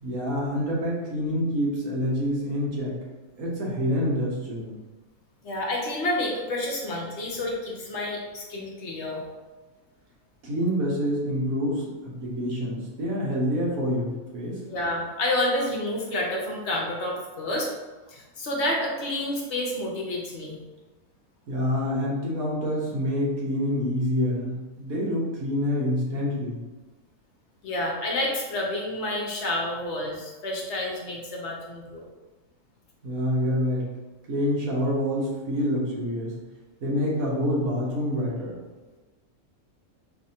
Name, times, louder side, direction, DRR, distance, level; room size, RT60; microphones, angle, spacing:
voice 1, 0.0-3.0 3.4-4.8 10.4-14.6 21.5-26.6 33.0-33.9 34.3-36.4 36.8-38.6, equal, 75° right, -4 dB, 1.6 m, -27 dB
voice 2, 5.4-9.2 14.6-17.7 18.1-20.6 27.6-32.1, left 1 dB, 55° left, -1 dB, 1.0 m, -29 dB
4.7 x 3.3 x 2.8 m, 1.2 s
omnidirectional pair, 1.5 m